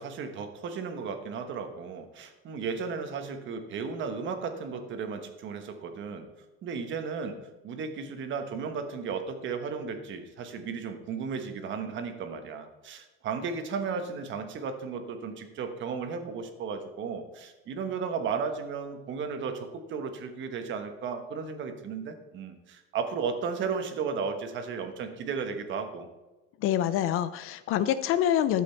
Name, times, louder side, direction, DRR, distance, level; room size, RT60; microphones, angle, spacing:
voice 1, 0.0-6.2 6.6-7.4 7.6-26.1, right 5 dB, 35° right, 7 dB, 1.2 m, -34 dB
voice 2, 26.6-28.6, left 11 dB, 45° left, 13 dB, 0.4 m, -26 dB
12.0 x 7.8 x 4.4 m, 1.1 s
cardioid pair, 165°, 32 cm